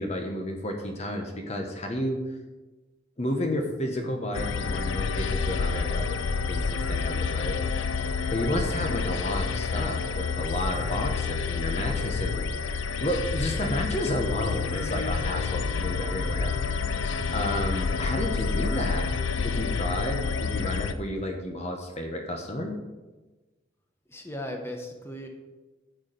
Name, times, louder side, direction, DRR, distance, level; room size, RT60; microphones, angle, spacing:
voice 1, 0.0-2.2 3.2-6.2 6.5-7.6 8.0-16.6 16.8-19.1 19.4-22.8, left 1 dB, 35° left, 3 dB, 1.1 m, -31 dB
sound 1, 4.3-20.9, left 5 dB, 80° left, 0.5 m, -29 dB
voice 2, 24.1-25.3, left 1 dB, 15° left, 2 dB, 1.2 m, -37 dB
11.0 x 4.8 x 7.8 m, 1.2 s
head